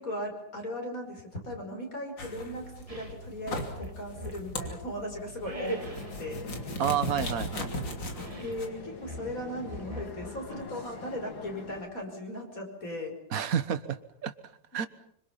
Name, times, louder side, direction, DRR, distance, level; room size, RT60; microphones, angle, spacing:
voice 1, 0.0-6.5 8.4-13.1, left 1 dB, 45° left, 2 dB, 6.0 m, -38 dB
sound 1, 2.2-8.7, left 1 dB, 70° left, 3.7 m, -38 dB
sound 2, 2.9-3.2 3.7-4.9 5.4-6.3 8.1-8.7 9.0-10.5, right 1 dB, 20° right, 2.3 m, -41 dB
sound 3, 5.7-11.8, left 3 dB, 85° left, 3.4 m, -44 dB
voice 2, 6.8-7.7 13.3-14.3 14.7-14.9, right 8 dB, 50° right, 11 dB, 1.6 m, -29 dB
26.0 x 25.5 x 5.8 m, 0.72 s
omnidirectional pair, 2.0 m